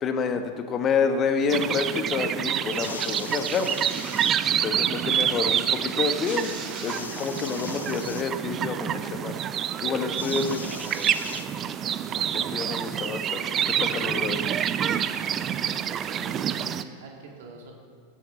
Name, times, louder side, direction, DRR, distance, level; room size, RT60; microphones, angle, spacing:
voice 1, 0.0-3.8 4.6-6.5 6.8-9.3 9.8-10.6 12.5-13.4 13.7-14.4, left 5 dB, 25° left, 8 dB, 1.2 m, -28 dB
sound 1, 1.5-16.8, right 9 dB, 30° right, 0.5 m, -27 dB
sound 2, 2.7-4.4 6.2-8.3 10.2-11.9 12.8-12.9, left 5 dB, 70° left, 0.8 m, -40 dB
voice 2, 4.9-5.4 11.9-12.6 15.1-15.4 15.7-17.7, right 3 dB, 55° right, 0 dB, 2.7 m, -46 dB
16.5 x 10.5 x 4.2 m, 2.1 s
figure-of-eight pair, 90°, 0 cm